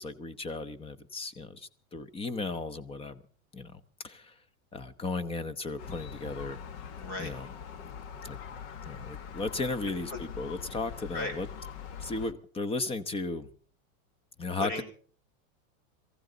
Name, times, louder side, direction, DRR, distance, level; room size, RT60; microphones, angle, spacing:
voice 1, 0.0-3.2 3.5-4.3 4.7-6.6 7.2-7.5 8.2-8.4 8.9-11.5 12.0-13.5 14.4-14.8, left 3 dB, 15° left, 13 dB, 0.9 m, -35 dB
Gull seagull, 5.8-12.3, left 7 dB, 55° left, 1.6 m, -43 dB
voice 2, 7.0-7.3 10.1-10.2 11.1-11.4 14.6-14.8, left 2 dB, 40° left, 7 dB, 5.5 m, -35 dB
23.0 x 15.0 x 4.0 m, 0.43 s
supercardioid pair, 145°, 42 cm